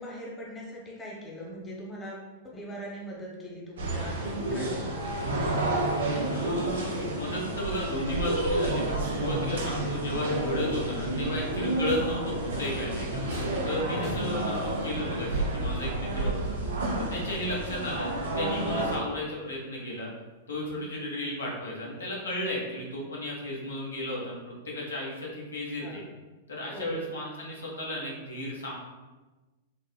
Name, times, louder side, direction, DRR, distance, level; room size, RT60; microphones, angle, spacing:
voice 1, 0.0-5.5 13.8-14.1 17.3-17.5 20.8-20.9 25.8-26.1 26.7-27.1, equal, 20° left, -3 dB, 0.7 m, -41 dB
sound 1, 3.8-19.0, right 1 dB, 75° right, 0.5 m, -30 dB
voice 2, 6.3-13.2 13.6-16.6 17.0-20.1 20.5-24.4 24.6-26.0 26.5-28.7, left 1 dB, 85° left, -3 dB, 0.7 m, -34 dB
sound 2, 11.6-15.1 16.1-16.2 16.7-18.2 18.5-20.2 20.6-20.8 21.9-22.5, equal, 50° left, 0.9 m, -45 dB
3.4 x 2.0 x 2.2 m, 1.2 s
hypercardioid pair, 100°, 0 cm